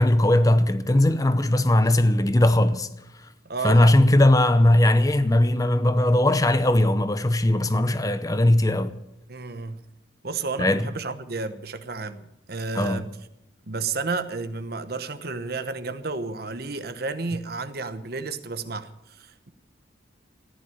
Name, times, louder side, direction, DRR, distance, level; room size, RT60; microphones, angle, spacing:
voice 1, 0.0-2.9 3.6-9.0 10.6-10.9 12.7-13.0, left 1 dB, 20° left, 0.7 m, -19 dB
voice 2, 3.4-4.0 9.3-9.8 10.2-13.1 13.7-19.5, right 4 dB, 55° right, 1.1 m, -32 dB
14.5 x 10.5 x 8.7 m
head